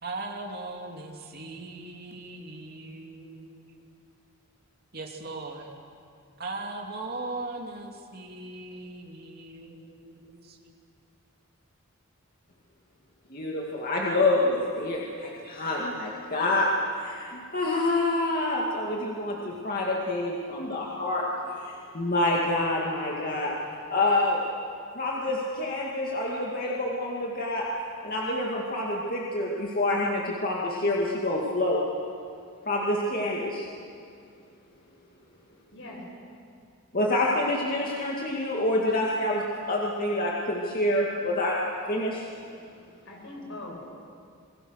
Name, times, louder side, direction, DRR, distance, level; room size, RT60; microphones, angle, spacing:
voice 1, 0.0-3.9 4.9-5.7 6.4-10.7, right 2 dB, 45° right, 1 dB, 2.6 m, -39 dB
voice 2, 13.3-16.7 17.0-21.3 21.6-23.5 23.9-24.4 24.9-27.7 28.0-31.8 32.6-33.7 36.9-41.6 41.9-42.3, left 2 dB, 45° left, -3 dB, 2.3 m, -27 dB
voice 3, 43.1-43.8, left 2 dB, 65° left, -1 dB, 5.5 m, -41 dB
28.0 x 21.5 x 6.5 m, 2.4 s
head